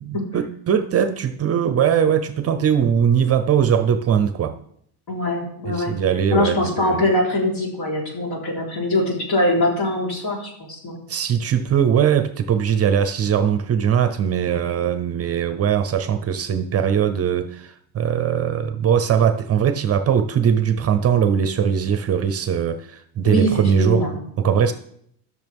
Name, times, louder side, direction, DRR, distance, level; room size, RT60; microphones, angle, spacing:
voice 1, 0.0-4.6 5.7-7.0 11.1-24.1 24.4-24.7, right 8 dB, 30° right, 10 dB, 0.7 m, -20 dB
voice 2, 5.1-5.9 6.3-11.0 14.4-14.6 23.2-24.1, left 1 dB, 55° left, -3 dB, 4.1 m, -22 dB
14.0 x 6.4 x 3.6 m, 0.69 s
cardioid pair, 125°, 45 cm